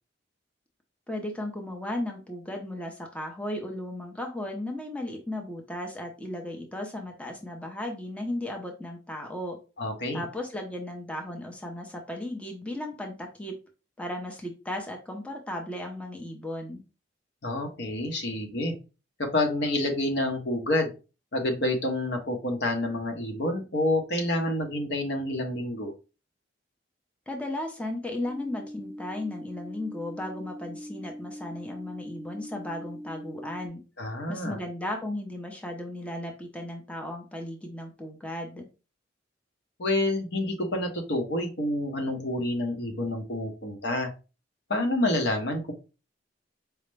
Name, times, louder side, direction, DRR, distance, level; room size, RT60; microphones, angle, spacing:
voice 1, 1.1-9.6 10.1-13.6 14.0-16.8 27.3-33.8 34.3-38.7, left 1 dB, 5° left, 2 dB, 0.6 m, -35 dB
voice 2, 9.8-10.2 17.4-18.7 19.2-20.9 21.3-25.9 34.0-34.6 39.8-44.1 44.7-45.7, left 1 dB, 65° left, 3 dB, 0.9 m, -28 dB
sound 1, 28.2-33.7, equal, 40° right, 0.9 m, -41 dB
4.8 x 2.1 x 3.2 m, 0.31 s
head